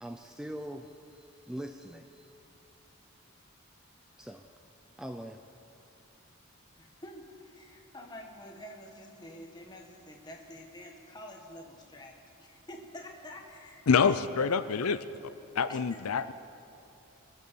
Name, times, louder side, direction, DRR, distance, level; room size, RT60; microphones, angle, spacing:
voice 1, 0.0-2.3 4.2-4.5 5.0-5.4, equal, 5° right, 5 dB, 0.4 m, -42 dB
voice 2, 6.8-14.2 15.7-15.8, left 1 dB, 20° left, 1 dB, 1.6 m, -48 dB
voice 3, 13.9-15.0 15.5-16.3, left 5 dB, 80° left, 13 dB, 0.5 m, -26 dB
24.5 x 8.2 x 7.0 m, 2.8 s
head